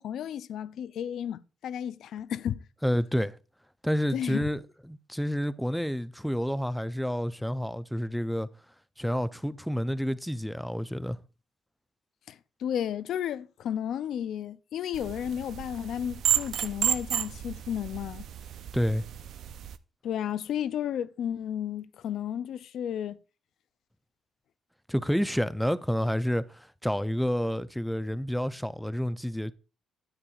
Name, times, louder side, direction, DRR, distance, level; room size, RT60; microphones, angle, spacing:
voice 1, 0.0-2.6 4.1-4.5 12.3-18.3 20.0-23.2, left 9 dB, 75° left, 0.4 m, -33 dB
voice 2, 2.8-3.3 3.8-4.6 4.9-8.5 9.0-11.2 18.7-19.0 24.9-29.5, equal, ahead, 0.4 m, -29 dB
sound 1, 14.9-19.8, right 11 dB, 70° right, 0.4 m, -32 dB
9.7 x 8.7 x 2.4 m
cardioid pair, 90°, 0 cm